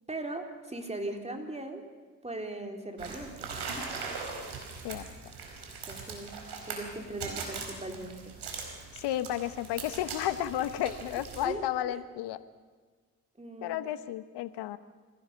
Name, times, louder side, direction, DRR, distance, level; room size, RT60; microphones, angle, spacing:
voice 1, 0.1-1.8 2.2-3.5 5.9-6.3 6.6-8.3 10.8-11.0 11.4-12.0 13.4-13.8, right 2 dB, 15° right, 4 dB, 3.7 m, -39 dB
sound 1, 3.0-11.4, right 4 dB, 60° right, 4.7 m, -41 dB
voice 2, 8.9-12.4 13.6-14.8, left 12 dB, 65° left, 14 dB, 1.1 m, -32 dB
24.5 x 16.5 x 6.9 m, 1.5 s
hypercardioid pair, 50°, 43 cm